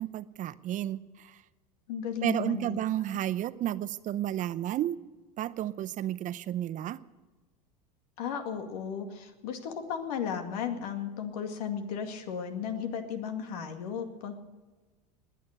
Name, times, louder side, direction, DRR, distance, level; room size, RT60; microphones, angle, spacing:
voice 1, 0.0-1.4 2.2-5.0 5.4-7.0, right 12 dB, 40° right, 15 dB, 0.7 m, -32 dB
voice 2, 1.9-2.8 3.1-3.2 8.2-14.4, left 7 dB, 75° left, 6 dB, 2.1 m, -35 dB
20.0 x 9.3 x 6.6 m, 1.2 s
hypercardioid pair, 95°, 20 cm